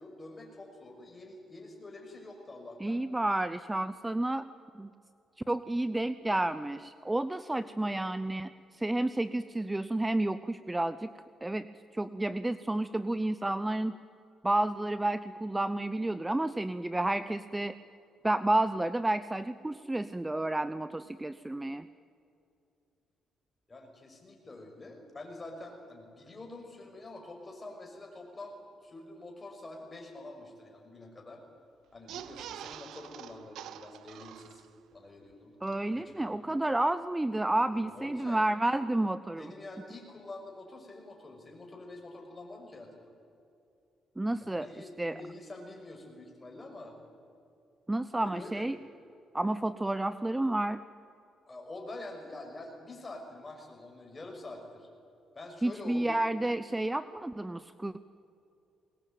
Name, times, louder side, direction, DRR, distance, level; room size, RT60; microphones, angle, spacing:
voice 1, 0.0-3.0 23.7-31.4 31.9-34.7 34.9-35.5 35.9-36.4 37.8-38.4 39.3-43.0 44.4-47.0 48.2-48.7 51.5-54.9 55.3-56.2, left 2 dB, 25° left, 2 dB, 6.3 m, -46 dB
voice 2, 2.8-4.5 4.7-4.9 5.5-11.1 11.4-11.7 11.9-14.0 14.4-17.8 18.2-21.9 35.6-39.5 44.2-44.7 45.0-45.2 47.9-48.8 49.3-50.8 55.6-58.0, right 1 dB, 10° right, 13 dB, 0.6 m, -30 dB
sound 1, 31.9-34.9 35.3-35.4 35.6-35.7, right 10 dB, 80° right, 0.8 m, -45 dB
22.5 x 19.5 x 9.2 m, 2.6 s
cardioid pair, 90°, 0 cm